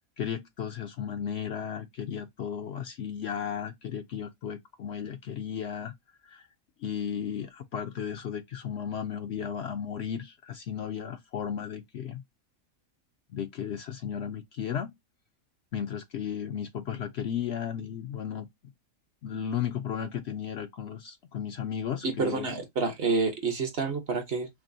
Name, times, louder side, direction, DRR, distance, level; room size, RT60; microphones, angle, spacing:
voice 1, 0.2-5.9 6.2-6.5 6.8-12.2 13.3-15.0 15.7-18.5 19.2-22.5, left 8 dB, 65° left, 0.7 m, -34 dB
voice 2, 22.0-24.5, right 4 dB, 50° right, 1.0 m, -28 dB
5.9 x 2.1 x 2.6 m
omnidirectional pair, 1.4 m